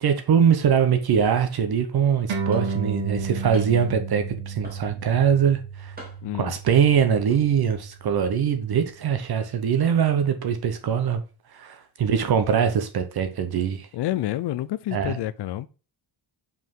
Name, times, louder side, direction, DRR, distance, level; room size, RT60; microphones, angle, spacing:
voice 1, 0.0-5.9 6.3-11.2 11.5-13.9 14.9-15.2, right 7 dB, 50° right, 0.9 m, -22 dB
sound 1, 2.3-9.1, right 5 dB, 85° right, 2.4 m, -33 dB
sound 2, 2.5-2.8 3.5-3.9 4.6-5.1 6.0-6.4 7.1-7.4, right 2 dB, 20° right, 2.7 m, -43 dB
voice 2, 6.2-6.5 13.9-15.7, left 14 dB, 60° left, 0.6 m, -28 dB
5.7 x 4.9 x 3.6 m
wide cardioid pair, 175°, 47 cm